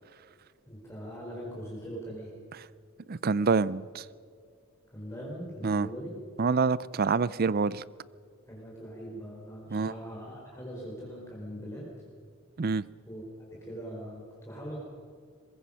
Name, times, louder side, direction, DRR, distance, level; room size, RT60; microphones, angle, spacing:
voice 1, 0.6-2.3 4.9-6.1 8.5-11.9 13.0-14.8, equal, 15° left, 4.5 m, -41 dB
voice 2, 3.1-4.0 5.6-5.9 6.4-7.8 9.7-9.9 12.6-12.8, right 4 dB, 45° right, 0.5 m, -26 dB
22.5 x 21.0 x 5.7 m
head